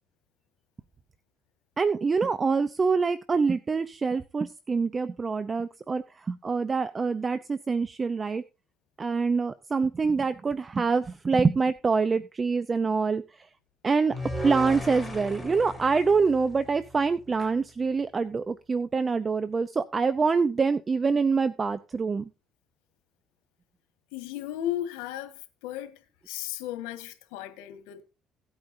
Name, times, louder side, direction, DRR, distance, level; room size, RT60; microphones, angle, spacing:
voice 1, 1.8-8.4 9.0-13.5 13.8-14.1 14.4-22.3, right 4 dB, 30° right, 0.7 m, -25 dB
sound 1, 14.1-17.3, equal, 10° left, 4.8 m, -36 dB
voice 2, 24.1-25.3 25.6-26.0 26.3-28.0, left 12 dB, 90° left, 1.7 m, -35 dB
17.0 x 8.9 x 2.7 m
supercardioid pair, 85°, 0 cm